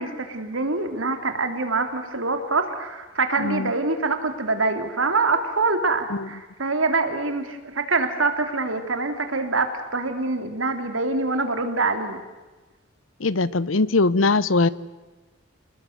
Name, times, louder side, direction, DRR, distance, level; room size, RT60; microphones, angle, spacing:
voice 1, 0.0-12.2, right 3 dB, 90° right, 7 dB, 3.1 m, -25 dB
voice 2, 3.4-3.7 6.1-6.3 13.2-14.7, left 3 dB, 85° left, 19 dB, 0.9 m, -21 dB
29.5 x 20.0 x 8.0 m, 1.2 s
head